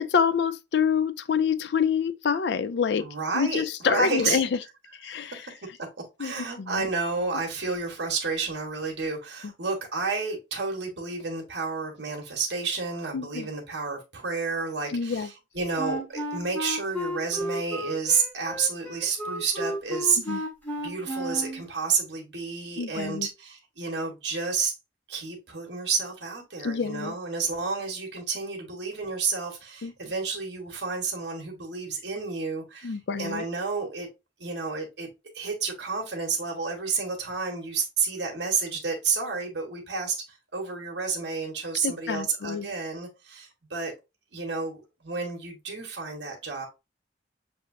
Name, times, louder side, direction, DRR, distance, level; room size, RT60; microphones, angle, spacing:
voice 1, 0.0-3.1 3.3-4.6 5.0-5.5 6.2-6.3 6.6-6.9 9.4-9.5 13.1-13.5 14.9-15.3 20.3-20.4 22.8-23.3 26.6-27.1 29.8-29.9 32.8-33.5 41.8-42.7, left 6 dB, 70° left, 0.4 m, -27 dB
voice 2, 3.0-4.4 5.1-5.5 6.2-20.4 20.8-24.7 25.1-34.1 34.4-35.1 35.3-43.9 44.3-46.7, right 4 dB, 75° right, 1.3 m, -30 dB
Wind instrument woodwind instrument, 15.8-21.7, right 1 dB, 10° left, 1.2 m, -33 dB
6.7 x 2.8 x 2.6 m
head